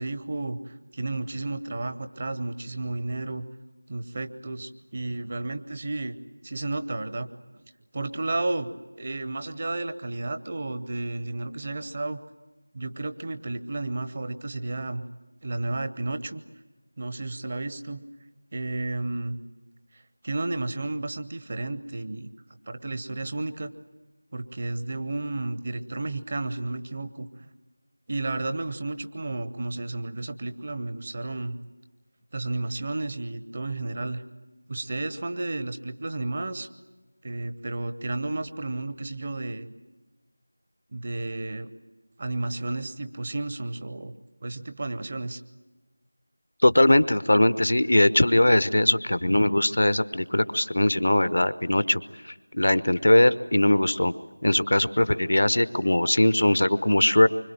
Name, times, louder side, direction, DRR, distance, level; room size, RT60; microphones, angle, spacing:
voice 1, 0.0-3.4 3.9-6.2 6.4-7.3 7.9-12.2 12.7-15.0 15.4-16.4 17.0-18.0 18.5-19.4 19.9-22.3 22.7-23.7 24.3-27.5 28.1-31.6 32.3-34.2 34.7-36.7 37.2-39.7 40.9-41.7 42.2-44.1 44.4-45.4, right 2 dB, 30° right, 10 dB, 0.9 m, -32 dB
voice 2, 46.6-54.1 54.4-57.3, left 1 dB, 65° left, 14 dB, 0.9 m, -21 dB
25.0 x 24.5 x 7.5 m, 1.2 s
figure-of-eight pair, 175°, 0 cm